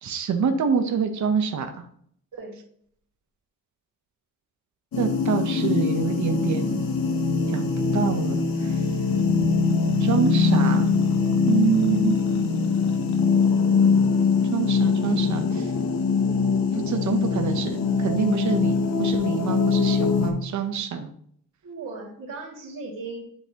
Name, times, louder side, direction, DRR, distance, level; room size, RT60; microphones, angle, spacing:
voice 1, 0.0-1.7 5.0-6.8 7.5-8.7 9.3-9.5 10.0-10.9 11.5-12.2 14.5-15.7 16.9-21.1, right 6 dB, 60° right, 5 dB, 0.8 m, -26 dB
sound 1, 4.9-20.3, left 5 dB, 90° left, 1.0 m, -22 dB
sound 2, 8.9-20.0, left 5 dB, 60° left, 0.8 m, -39 dB
voice 2, 21.6-23.2, right 3 dB, 75° right, -4 dB, 2.5 m, -37 dB
9.6 x 3.8 x 2.9 m, 0.63 s
wide cardioid pair, 135°, 33 cm